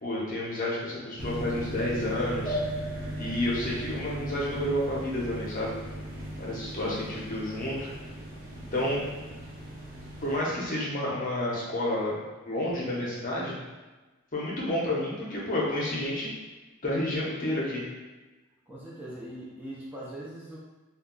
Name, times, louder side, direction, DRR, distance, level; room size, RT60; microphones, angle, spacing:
voice 1, 0.0-2.6 3.2-5.8 6.4-7.9 8.7-9.0 10.2-12.2 12.5-13.6 14.3-16.3 16.8-17.8, left 1 dB, 40° left, -5 dB, 0.7 m, -30 dB
sound 1, 1.2-10.4, equal, 45° right, 0.7 m, -39 dB
sound 2, 2.4-5.4, equal, 80° right, 1.0 m, -37 dB
voice 2, 6.7-7.1 8.8-8.9 9.2-9.3 18.7-20.6, right 1 dB, 10° right, -7 dB, 0.4 m, -42 dB
2.3 x 2.2 x 3.7 m, 1.2 s
head